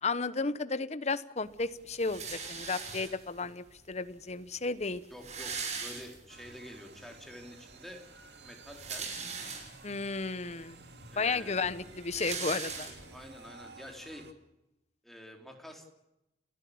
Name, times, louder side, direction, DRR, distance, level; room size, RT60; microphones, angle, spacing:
voice 1, 0.0-5.0 9.8-10.8 11.2-12.9, left 4 dB, 40° left, 13 dB, 1.0 m, -33 dB
sound 1, 2.0-3.4 4.3-4.4 4.6-4.7 4.9-6.5 7.0-7.1 8.5-10.0 10.6-10.7 11.0-13.3, right 5 dB, 40° right, 5.9 m, -40 dB
voice 2, 5.1-8.0 8.4-9.1 11.1-11.6 13.1-14.3 15.0-15.9, equal, ahead, 2 dB, 3.8 m, -48 dB
sound 2, 6.3-14.3, right 3 dB, 70° right, 2.3 m, -54 dB
29.5 x 13.5 x 8.7 m, 0.91 s
head